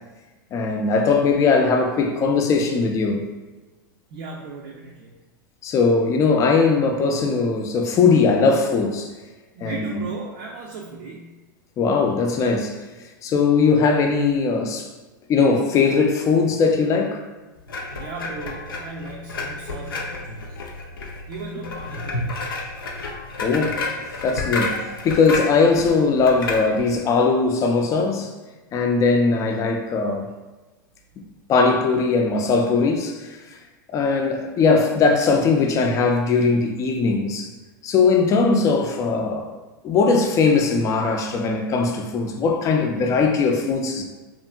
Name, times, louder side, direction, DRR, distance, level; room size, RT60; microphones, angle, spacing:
voice 1, 0.5-3.3 5.6-9.1 9.6-10.1 11.8-12.8 13.2-14.9 15.3-17.2 23.4-23.9 24.2-28.3 28.7-30.3 31.5-33.4 33.9-37.5 37.8-39.6 39.8-44.0, left 4 dB, 30° left, 0.4 m, -20 dB
voice 2, 4.1-5.1 9.5-11.3 17.9-20.6 21.3-22.4, right 3 dB, 60° right, 0.4 m, -36 dB
sound 1, 17.7-27.0, left 3 dB, 85° left, 0.5 m, -31 dB
2.8 x 2.4 x 2.3 m
hypercardioid pair, 105°, 11 cm